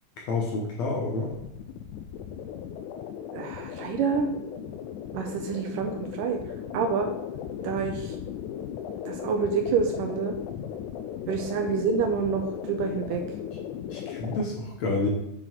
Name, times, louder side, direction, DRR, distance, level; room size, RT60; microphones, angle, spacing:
voice 1, 0.2-1.3 11.6-11.7 13.9-15.1, left 3 dB, 60° left, -1 dB, 2.0 m, -29 dB
sound 1, 1.3-14.4, left 9 dB, 85° left, 1.8 m, -37 dB
voice 2, 3.3-4.3 5.1-5.9 6.2-6.4 6.7-7.1 7.6-8.1 9.1-10.3 11.3-13.2, right 5 dB, 80° right, 5 dB, 2.1 m, -27 dB
7.8 x 5.8 x 4.5 m, 0.85 s
omnidirectional pair, 4.2 m